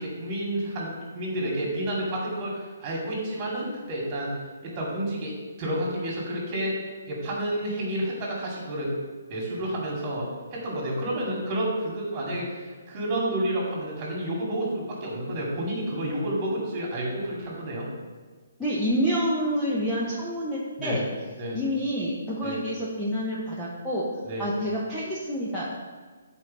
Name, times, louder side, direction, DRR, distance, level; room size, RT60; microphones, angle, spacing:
voice 1, 0.0-4.3 4.6-5.3 5.6-6.8 7.0-8.9 9.3-17.9 20.8-21.0 21.4-21.6 22.4-22.6 24.2-24.5, right 1 dB, 20° right, -3 dB, 2.2 m, -30 dB
voice 2, 18.6-21.0 21.5-24.1 24.4-25.6, equal, 5° left, -9 dB, 0.8 m, -28 dB
8.5 x 4.6 x 5.4 m, 1.5 s
hypercardioid pair, 170°, 0 cm